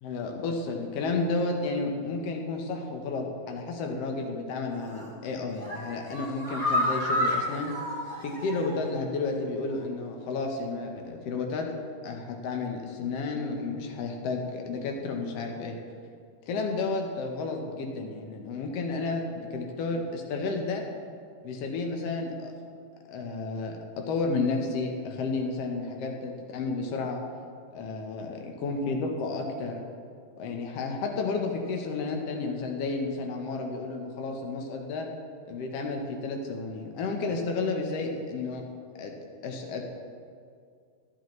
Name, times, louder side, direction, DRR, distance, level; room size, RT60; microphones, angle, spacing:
voice 1, 0.0-7.7 8.2-11.7 12.0-15.8 16.5-20.8 21.4-22.5 23.0-27.2 27.7-29.8 30.4-35.1 35.4-38.7 38.9-39.1 39.4-39.8, left 3 dB, 85° left, 2 dB, 1.3 m, -32 dB
sound 1, 4.7-5.1 5.5-8.9 9.2-9.3 9.7-9.8, left 1 dB, 10° left, 1.4 m, -30 dB
12.5 x 12.0 x 3.1 m, 2.2 s
omnidirectional pair, 4.2 m